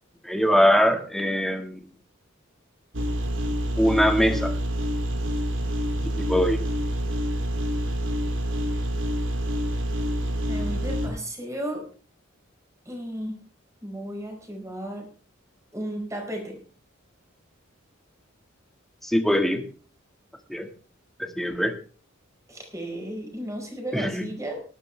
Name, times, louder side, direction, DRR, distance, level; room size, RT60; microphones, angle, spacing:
voice 1, 0.2-1.8 3.8-4.5 6.0-6.6 19.0-19.6 20.5-20.7 21.2-21.7 23.9-24.3, equal, ahead, 5 dB, 1.7 m, -22 dB
sound 1, 2.9-11.1, equal, 70° right, 2.8 m, -27 dB
voice 2, 10.5-11.8 12.8-13.4 13.8-15.1 15.7-16.6 21.4-21.5 22.5-24.6, right 1 dB, 15° right, 2 dB, 4.9 m, -34 dB
19.0 x 11.5 x 3.3 m, 0.38 s
head